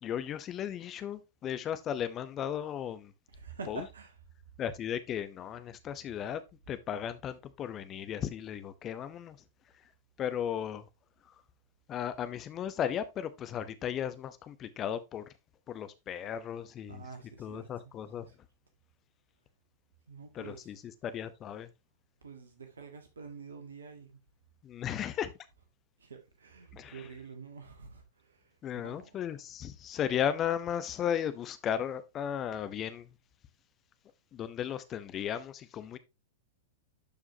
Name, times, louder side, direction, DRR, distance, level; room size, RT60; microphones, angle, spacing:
voice 1, 0.0-3.1 3.7-3.8 4.6-6.4 6.7-9.4 10.2-10.9 11.9-15.3 15.7-17.0 17.4-18.3 20.3-20.8 21.0-21.7 24.6-25.3 26.7-27.0 28.6-33.1 34.3-36.0, left 9 dB, 30° left, 0.8 m, -35 dB
voice 2, 3.3-4.2 16.9-17.9 18.2-18.3 20.1-20.7 21.5-21.6 22.2-24.2 26.0-29.2, right 4 dB, 75° right, 1.6 m, -47 dB
11.5 x 4.8 x 2.8 m
figure-of-eight pair, 100°, 0 cm